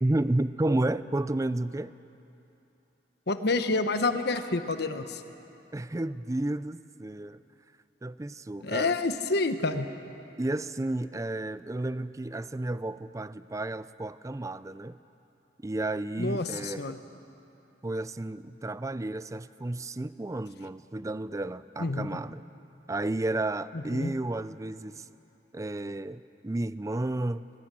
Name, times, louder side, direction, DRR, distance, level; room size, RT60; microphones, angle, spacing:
voice 1, 0.0-1.9 5.7-7.4 8.0-9.0 10.4-15.0 15.6-16.9 17.8-22.4 22.9-25.1 25.5-27.4, right 2 dB, 20° right, 15 dB, 0.4 m, -32 dB
voice 2, 3.3-5.2 8.6-9.9 16.2-17.0 21.8-22.2 23.9-24.1, left 3 dB, 65° left, 9 dB, 1.1 m, -28 dB
22.0 x 20.5 x 7.6 m, 2.9 s
head